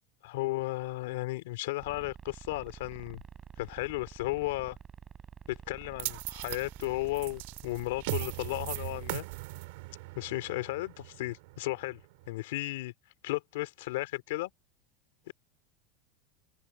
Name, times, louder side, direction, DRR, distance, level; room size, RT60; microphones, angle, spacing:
voice 1, 0.2-3.2 3.6-4.8 5.5-9.2 10.1-12.0 12.3-12.9 13.2-14.5 15.3-15.4, left 19 dB, 80° left, 3.2 m, -34 dB
sound 1, 1.8-9.2, right 8 dB, 20° right, 6.5 m, -49 dB
sound 2, 6.0-12.3, right 24 dB, 65° right, 5.7 m, -39 dB
supercardioid pair, 160°, 0 cm